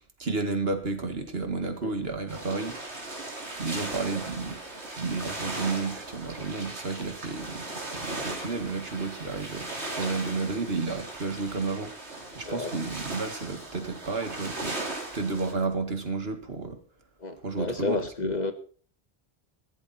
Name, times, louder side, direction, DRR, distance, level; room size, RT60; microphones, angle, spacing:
voice 1, 0.2-2.8 3.6-4.6 4.9-9.7 10.0-11.9 12.3-16.8 17.4-18.3, right 3 dB, 65° right, 2.2 m, -32 dB
voice 2, 1.6-1.9 12.5-12.8 17.2-18.5, left 3 dB, 40° left, 1.5 m, -31 dB
sound 1, 2.3-15.5, right 2 dB, 85° right, 3.4 m, -38 dB
15.5 x 13.5 x 4.3 m
omnidirectional pair, 1.1 m